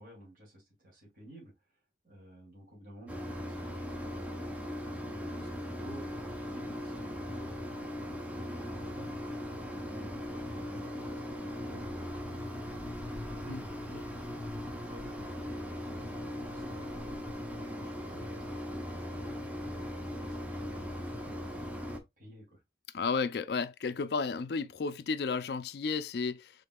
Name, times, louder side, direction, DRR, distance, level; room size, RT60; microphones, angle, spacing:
voice 1, 0.0-1.8 2.0-4.4 4.8-9.1 9.7-12.8 13.1-14.1 14.4-19.4 20.0-21.6 22.2-22.6, right 1 dB, 50° right, 2.6 m, -52 dB
Mechanisms, 3.1-22.0, left 1 dB, 10° right, 0.8 m, -39 dB
voice 2, 22.9-26.5, left 4 dB, 60° left, 0.4 m, -33 dB
5.2 x 3.7 x 2.2 m
head